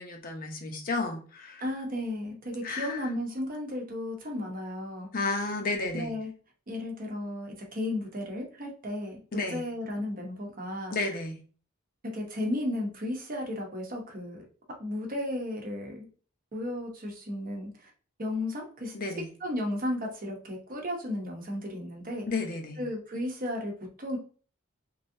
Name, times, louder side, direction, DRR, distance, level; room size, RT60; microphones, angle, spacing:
voice 1, 0.0-1.6 2.6-3.0 5.1-6.1 9.3-9.6 10.9-11.4 18.9-19.3 22.3-22.8, left 3 dB, 45° left, 3 dB, 0.6 m, -32 dB
voice 2, 1.6-5.1 5.9-6.3 6.7-11.0 12.0-14.4 14.8-16.1 16.5-17.9 18.2-18.9 19.4-22.3 22.8-23.7 24.0-24.2, left 1 dB, 40° right, 1 dB, 0.8 m, -34 dB
3.2 x 2.6 x 2.6 m, 0.40 s
head